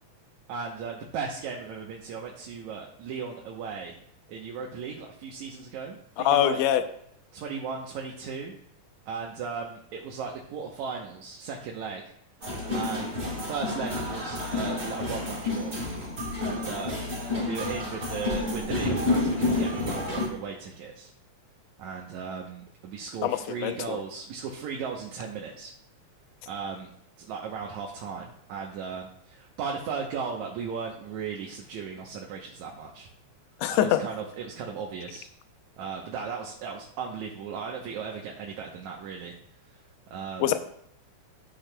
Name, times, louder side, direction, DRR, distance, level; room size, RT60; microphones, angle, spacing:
voice 1, 0.5-4.0 4.3-6.6 7.3-8.5 9.1-12.0 12.7-13.2 13.5-15.8 16.4-17.1 17.4-21.1 21.8-25.7 26.5-26.9 27.2-33.1 33.7-35.3 35.8-39.3 40.1-40.6, right 6 dB, 75° right, -1 dB, 2.2 m, -36 dB
voice 2, 6.2-6.8 23.2-24.0 33.6-34.0 40.4-40.6, left 11 dB, 80° left, 10 dB, 1.7 m, -24 dB
sound 1, 12.4-20.3, left 2 dB, 30° right, 3.0 m, -29 dB
12.5 x 8.8 x 2.2 m, 0.71 s
omnidirectional pair, 3.5 m